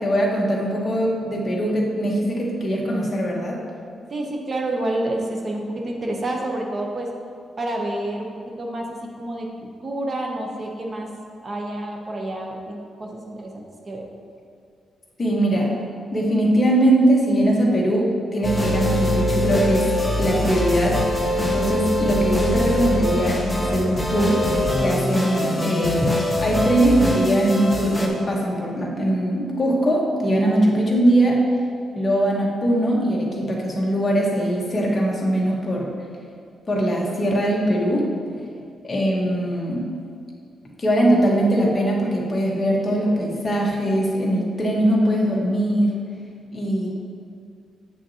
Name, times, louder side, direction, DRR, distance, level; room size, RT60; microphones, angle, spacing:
voice 1, 0.0-3.6 15.2-15.7 16.1-19.8 20.2-21.0 21.4-24.4 24.8-26.1 26.4-31.4 31.9-35.9 36.7-38.1 38.8-39.9 40.8-46.0 46.5-46.9, right 1 dB, 25° left, -3 dB, 1.2 m, -21 dB
voice 2, 4.1-7.1 7.6-8.9 9.2-11.1 11.4-14.0, right 1 dB, 35° right, 0 dB, 0.8 m, -29 dB
sound 1, 18.4-28.1, left 1 dB, 5° left, 0.8 m, -23 dB
8.1 x 6.0 x 2.8 m, 2.3 s
cardioid pair, 125°, 0 cm